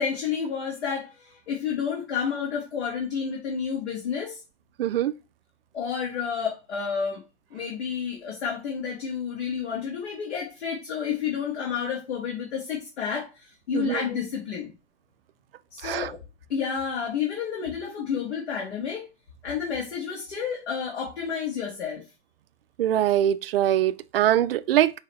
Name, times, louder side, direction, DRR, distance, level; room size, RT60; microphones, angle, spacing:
voice 1, 0.0-4.4 5.7-7.2 7.5-14.7 15.7-16.2 16.5-19.1 19.4-22.0, left 7 dB, 65° left, 1.6 m, -30 dB
voice 2, 4.8-5.1 13.7-14.0 15.8-16.1 22.8-24.9, right 12 dB, 60° right, 0.4 m, -23 dB
5.6 x 2.9 x 3.0 m
hypercardioid pair, 120°, 34 cm